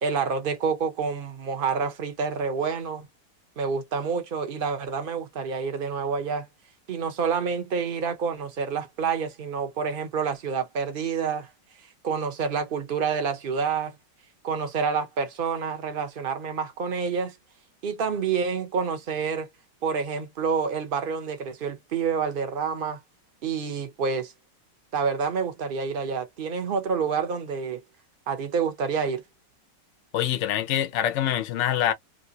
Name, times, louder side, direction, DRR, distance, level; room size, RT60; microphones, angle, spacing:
voice 1, 0.0-3.1 3.6-6.5 6.9-11.5 12.0-14.0 14.4-17.3 17.8-19.5 19.8-23.0 23.4-24.3 24.9-27.8 28.3-29.2, right 6 dB, 50° right, 0.6 m, -28 dB
voice 2, 30.1-31.9, left 11 dB, 65° left, 0.7 m, -25 dB
3.1 x 2.6 x 2.7 m
omnidirectional pair, 1.9 m